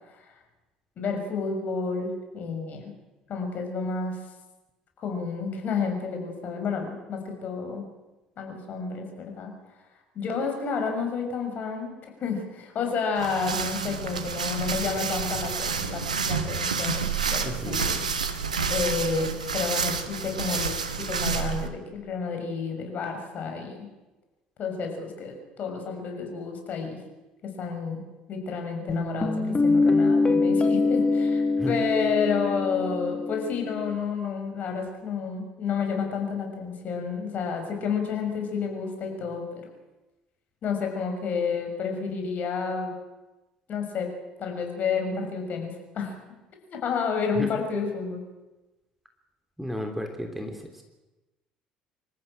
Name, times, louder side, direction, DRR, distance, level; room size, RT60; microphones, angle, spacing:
voice 1, 1.0-2.9 3.3-4.2 5.0-7.8 8.4-9.5 10.1-11.9 12.2-18.0 18.7-23.9 24.6-27.0 27.4-28.0 28.3-39.7 40.6-42.9 43.7-44.1 44.4-46.1 46.7-48.2, left 5 dB, 45° left, 4 dB, 6.3 m, -30 dB
sound 1, 13.1-21.7, right 6 dB, 80° right, 1.4 m, -29 dB
voice 2, 17.4-17.9 31.6-31.7 47.3-47.5 49.6-50.8, equal, 5° right, 4 dB, 3.1 m, -33 dB
Guitar, 28.9-33.9, left 3 dB, 25° left, 2.3 m, -24 dB
26.0 x 14.0 x 9.0 m, 1.1 s
figure-of-eight pair, 60°, 4 cm